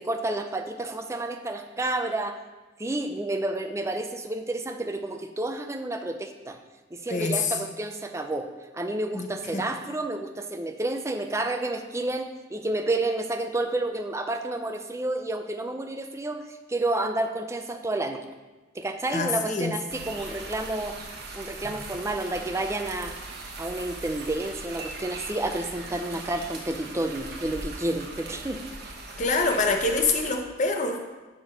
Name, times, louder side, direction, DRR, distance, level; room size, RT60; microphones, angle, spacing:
voice 1, 0.0-2.4 2.8-6.6 6.9-8.5 8.7-16.4 16.7-18.2 18.7-21.0 21.3-23.1 23.6-28.6, right 2 dB, 15° right, 6 dB, 0.5 m, -30 dB
voice 2, 7.1-7.6 9.1-9.6 19.1-19.8 29.2-31.0, left 3 dB, 40° left, 4 dB, 0.9 m, -26 dB
sound 1, 19.9-30.3, right 2 dB, 55° right, 1.1 m, -40 dB
6.1 x 6.1 x 5.1 m, 1.2 s
head